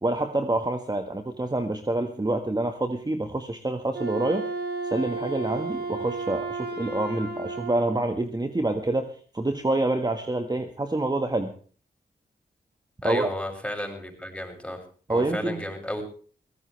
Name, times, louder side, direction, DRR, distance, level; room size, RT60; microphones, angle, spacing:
voice 1, 0.0-4.4 4.9-11.5 13.0-13.3 15.1-15.7, right 2 dB, 25° right, 6 dB, 1.7 m, -27 dB
Wind instrument woodwind instrument, 3.9-8.0, right 3 dB, 70° right, 5.4 m, -33 dB
voice 2, 13.0-14.8 15.1-16.0, equal, 5° left, 3 dB, 7.0 m, -32 dB
22.5 x 17.0 x 3.4 m, 0.43 s
cardioid pair, 55°, 17 cm